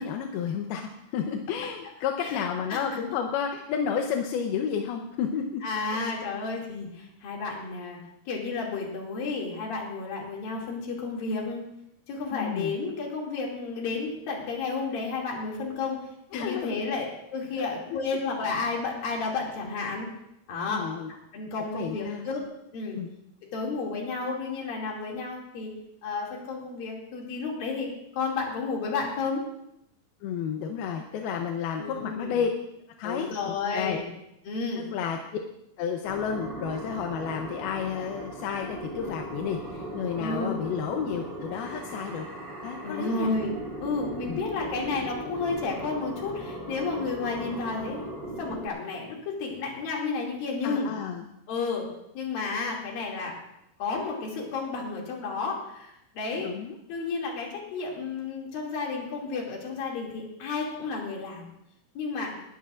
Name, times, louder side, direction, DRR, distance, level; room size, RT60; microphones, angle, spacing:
voice 1, 0.0-5.6 5.9-6.1 12.3-12.8 16.3-16.9 17.5-18.0 20.7-21.1 21.6-22.2 23.0-23.1 30.2-32.5 33.0-34.0 34.8-35.2 35.8-42.3 42.6-43.3 44.3-44.4 50.6-51.3 56.4-56.8, left 7 dB, 90° left, 3 dB, 2.8 m, -31 dB
voice 2, 5.6-8.0 8.3-11.6 12.1-16.0 16.3-20.1 20.5-20.9 21.3-22.4 22.7-23.0 23.5-25.7 26.0-29.4 31.8-32.4 33.0-34.1 34.4-34.8 40.2-40.6 42.8-48.1 48.4-50.9 51.5-51.9 52.1-53.4 53.8-56.5 56.9-61.5 62.0-62.4, left 4 dB, 70° left, -2 dB, 4.2 m, -32 dB
sound 1, 36.0-48.7, right 1 dB, 20° right, 1.9 m, -38 dB
20.0 x 13.0 x 2.5 m, 0.81 s
omnidirectional pair, 4.3 m